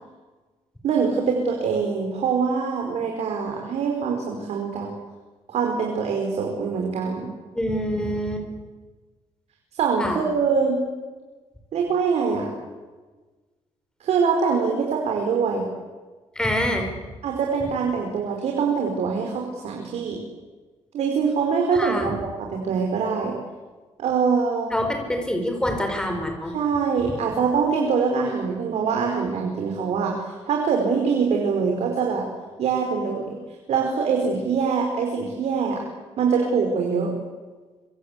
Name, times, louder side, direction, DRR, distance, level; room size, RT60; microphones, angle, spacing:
voice 1, 0.8-4.9 5.5-7.3 9.7-10.8 11.7-12.5 14.0-15.7 17.2-20.2 20.9-23.4 24.0-24.7 26.5-32.3 32.6-33.4 33.7-35.9 36.2-37.1, right 5 dB, 70° right, 1 dB, 4.9 m, -24 dB
voice 2, 7.6-8.5 10.0-10.2 16.4-16.9 21.7-22.1 24.7-26.5, equal, 5° left, 4 dB, 5.2 m, -25 dB
25.5 x 25.0 x 8.4 m, 1.3 s
cardioid pair, 155°, 11 cm